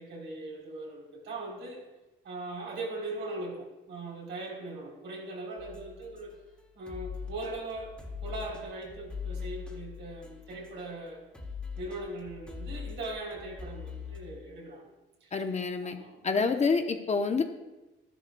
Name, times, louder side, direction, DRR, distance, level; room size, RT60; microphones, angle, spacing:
voice 1, 0.0-1.8 2.2-6.3 6.7-11.3 11.8-14.9 15.2-15.3 15.8-16.5, right 2 dB, 70° right, -2 dB, 3.7 m, -40 dB
sound 1, 5.6-11.1 11.3-14.2, left 6 dB, 5° left, 2.0 m, -42 dB
voice 2, 15.3-16.0 16.2-17.4, left 4 dB, 35° left, 6 dB, 0.9 m, -27 dB
13.0 x 11.0 x 2.3 m, 1.1 s
cardioid pair, 90°, 20 cm